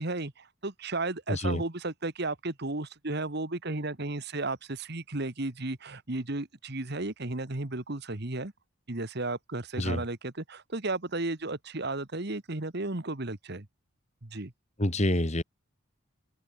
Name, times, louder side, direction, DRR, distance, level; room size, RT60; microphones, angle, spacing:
voice 1, 0.0-8.5 8.9-13.7 14.2-14.5, right 2 dB, 50° right, 1.7 m, -34 dB
voice 2, 1.3-1.6 9.8-10.0 14.8-15.4, left 1 dB, 35° left, 2.2 m, -27 dB
open air
head